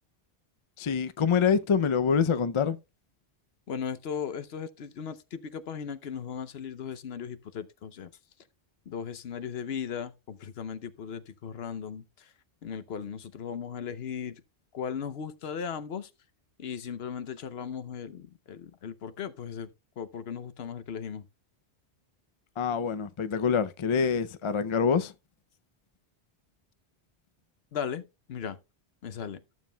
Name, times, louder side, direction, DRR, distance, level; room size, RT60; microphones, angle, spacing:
voice 1, 0.8-2.8 22.6-25.1, left 6 dB, 45° left, 0.4 m, -25 dB
voice 2, 3.7-8.1 8.9-12.3 12.6-14.4 14.7-16.1 16.6-19.7 20.0-21.3 27.7-28.6 29.0-29.4, left 7 dB, 65° left, 0.9 m, -37 dB
14.0 x 7.3 x 2.2 m
omnidirectional pair, 1.2 m